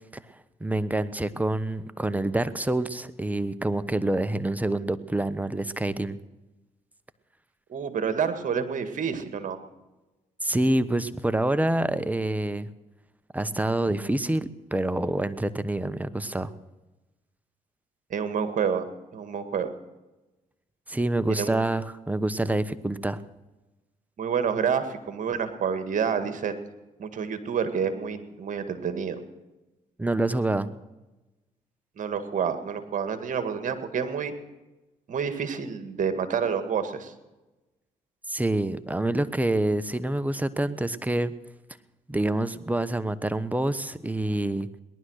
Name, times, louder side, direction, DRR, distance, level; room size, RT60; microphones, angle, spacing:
voice 1, 0.6-6.2 10.4-12.7 13.3-16.5 20.9-23.2 30.0-30.7 38.3-41.3 42.1-44.7, right 1 dB, 10° right, 13 dB, 1.1 m, -27 dB
voice 2, 7.7-9.6 18.1-18.9 19.1-19.7 21.3-21.6 24.2-26.6 27.0-29.2 32.0-34.3 35.1-37.1, right 7 dB, 60° right, 10 dB, 1.9 m, -28 dB
18.5 x 11.5 x 6.5 m, 1.1 s
supercardioid pair, 65°, 15 cm